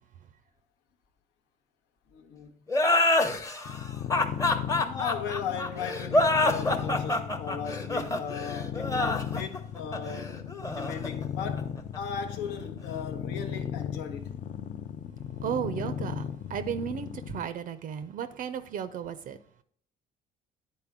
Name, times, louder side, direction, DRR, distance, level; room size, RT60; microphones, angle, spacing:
voice 1, 2.1-2.6 4.8-10.4 10.7-14.3, left 6 dB, 90° left, 0.9 m, -37 dB
sound 1, 2.7-12.0, left 2 dB, 20° left, 0.8 m, -27 dB
sound 2, 3.7-17.5, left 9 dB, 50° left, 0.5 m, -36 dB
voice 2, 15.4-16.2 16.5-19.4, right 8 dB, 55° right, 0.4 m, -34 dB
9.8 x 4.2 x 3.5 m
cardioid pair, 110°, 17 cm